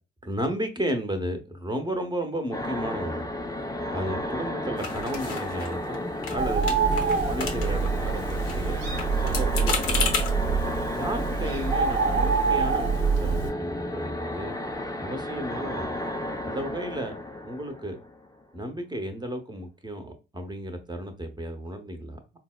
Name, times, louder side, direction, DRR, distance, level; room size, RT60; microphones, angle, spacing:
voice 1, 0.2-3.3 3.9-6.0 6.3-6.7 6.9-8.9 9.2-10.1 10.9-14.5 15.0-16.0 16.4-18.0 18.5-22.2, right 1 dB, 15° right, 0.8 m, -33 dB
sound 1, 2.5-18.4, left 1 dB, 10° left, 0.4 m, -33 dB
sound 2, 4.8-6.0 6.2-6.4 6.6-7.9 8.2-10.3, left 5 dB, 75° left, 0.8 m, -32 dB
Bird, 6.4-13.5, right 5 dB, 70° right, 0.8 m, -26 dB
4.1 x 2.0 x 2.3 m
hypercardioid pair, 45°, 29 cm